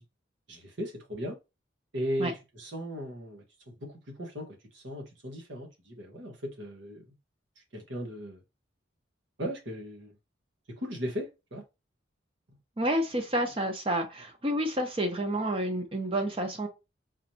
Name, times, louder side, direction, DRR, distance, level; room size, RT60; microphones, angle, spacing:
voice 1, 0.5-1.4 1.9-3.4 3.8-3.9 4.2-4.5 4.7-7.0 7.7-8.4 9.4-10.1 10.8-11.6, equal, 85° right, 1.3 m, -37 dB
voice 2, 12.8-16.7, right 1 dB, 30° right, 0.7 m, -29 dB
4.0 x 3.1 x 2.8 m
head